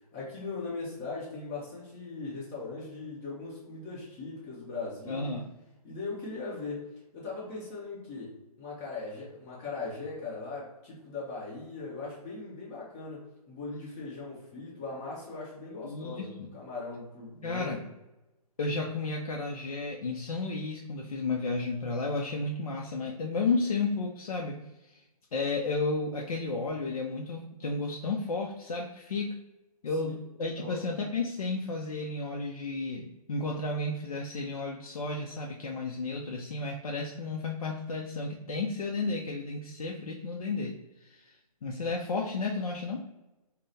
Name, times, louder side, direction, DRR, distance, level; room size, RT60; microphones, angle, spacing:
voice 1, 0.1-5.3 5.8-17.7 30.0-30.1 30.6-30.8, left 3 dB, 20° left, -7 dB, 1.0 m, -39 dB
voice 2, 5.1-5.5 15.8-16.5 17.4-17.8 18.6-25.0 25.3-29.4 29.8-43.0, left 3 dB, 65° left, 0 dB, 0.5 m, -33 dB
3.6 x 2.2 x 3.9 m, 1.0 s
figure-of-eight pair, 145°, 20 cm